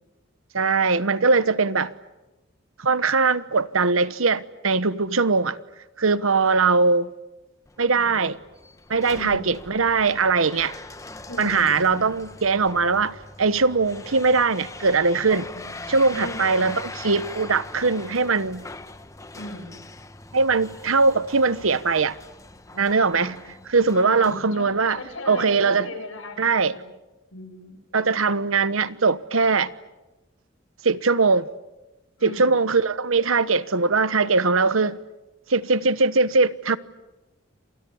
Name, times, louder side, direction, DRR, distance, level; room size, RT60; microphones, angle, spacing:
voice 1, 0.5-1.9 2.8-5.6 6.0-7.1 7.8-8.4 8.9-10.7 11.4-15.5 15.9-18.6 20.3-22.2 22.7-23.4 23.7-25.0 25.3-25.9 26.4-26.7 27.9-29.7 30.8-31.5 32.2-35.0 35.5-36.8, right 4 dB, 90° right, 1.2 m, -21 dB
sound 1, 7.7-25.2, left 2 dB, 15° left, 1.0 m, -41 dB
voice 2, 7.9-8.2 9.1-9.5 11.3-12.1 15.5-16.7 19.3-19.7 23.1-23.6 23.9-26.9 27.3-28.2 32.2-32.5, left 2 dB, 85° left, 7.9 m, -39 dB
30.0 x 27.5 x 7.2 m
head